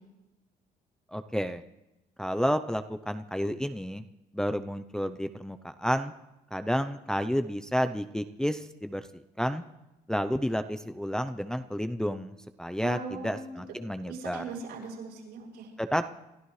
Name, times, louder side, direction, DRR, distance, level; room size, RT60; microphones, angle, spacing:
voice 1, 1.1-1.6 2.2-4.0 4.3-6.1 6.5-9.1 9.4-9.6 10.1-14.4 15.8-16.1, equal, 5° left, 8 dB, 0.6 m, -30 dB
voice 2, 12.8-13.5 14.1-15.7, right 5 dB, 80° right, -2 dB, 7.5 m, -39 dB
27.5 x 13.0 x 3.3 m, 0.97 s
cardioid pair, 110°, 17 cm